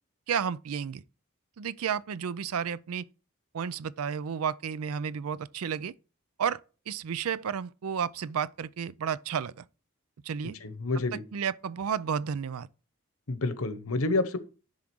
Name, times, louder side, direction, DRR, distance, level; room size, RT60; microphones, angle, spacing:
voice 1, 0.3-1.0 1.6-3.0 3.5-5.9 6.4-6.6 6.9-9.6 10.2-10.6 11.3-12.7, right 7 dB, 85° right, 0.4 m, -32 dB
voice 2, 10.4-11.2 13.3-14.4, left 2 dB, 80° left, 1.0 m, -29 dB
10.5 x 3.7 x 6.2 m
head